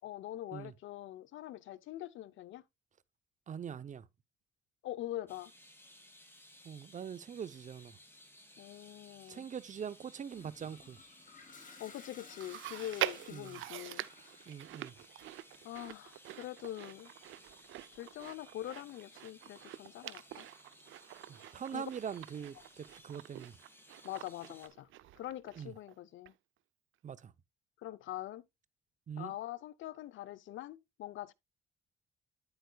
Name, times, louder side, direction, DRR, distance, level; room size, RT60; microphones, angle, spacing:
voice 1, 0.0-2.6 4.8-5.5 8.6-9.5 11.8-14.1 15.6-17.1 17.9-20.5 21.7-21.9 24.0-24.9 25.1-26.3 27.8-28.4 29.2-31.3, left 13 dB, 75° left, 0.6 m, -44 dB
voice 2, 3.5-4.0 6.6-8.0 9.3-11.0 13.3-13.6 14.5-14.9 21.5-23.5 25.6-25.7 27.0-27.3 29.1-29.3, right 7 dB, 40° right, 0.6 m, -43 dB
sound 1, 5.3-24.7, left 1 dB, 10° left, 2.2 m, -60 dB
Toilet flush, 10.3-14.6, left 4 dB, 40° left, 2.5 m, -56 dB
Chewing mastication, 12.4-25.9 26.3-26.4 27.2-27.3, right 15 dB, 80° right, 0.5 m, -45 dB
9.4 x 7.9 x 2.2 m
cardioid pair, 90°, 20 cm